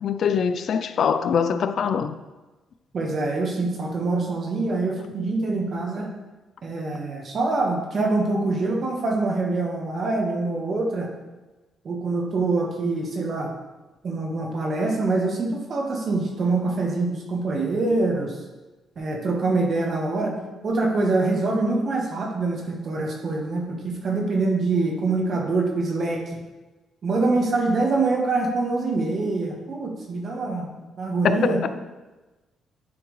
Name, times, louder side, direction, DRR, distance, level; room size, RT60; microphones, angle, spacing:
voice 1, 0.0-2.1 31.2-31.6, left 7 dB, 60° left, 0.4 m, -23 dB
voice 2, 2.9-6.1 6.6-11.1 11.8-13.5 14.0-18.4 19.0-20.3 20.6-26.2 27.0-30.7 31.0-31.6, right 3 dB, 50° right, 1.4 m, -24 dB
9.7 x 3.5 x 3.2 m
cardioid pair, 90°, 0 cm